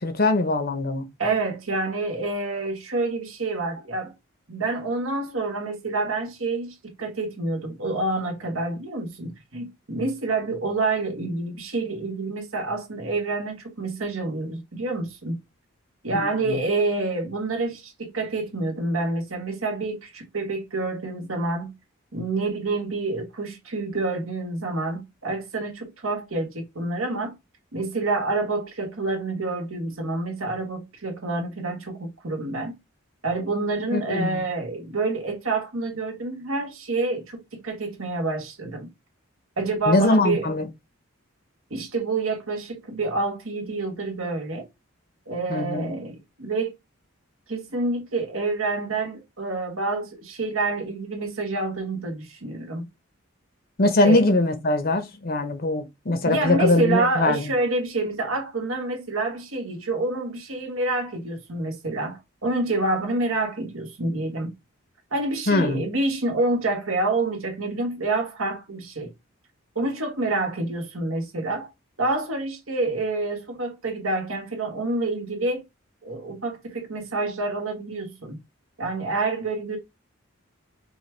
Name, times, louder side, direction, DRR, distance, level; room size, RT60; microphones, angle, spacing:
voice 1, 0.0-1.1 16.1-16.6 33.9-34.4 39.9-40.7 45.5-45.9 53.8-57.5 65.5-65.8, left 2 dB, 45° left, 0.8 m, -22 dB
voice 2, 1.2-4.1 4.5-15.4 16.0-21.7 22.1-27.3 27.7-32.8 33.2-38.9 39.6-40.5 41.7-44.7 45.3-46.7 47.5-52.9 54.0-54.2 56.2-64.5 65.1-69.1 69.7-71.7 72.0-75.6 76.0-78.4 78.8-79.8, right 2 dB, 80° right, 1.5 m, -27 dB
5.3 x 2.3 x 3.2 m
head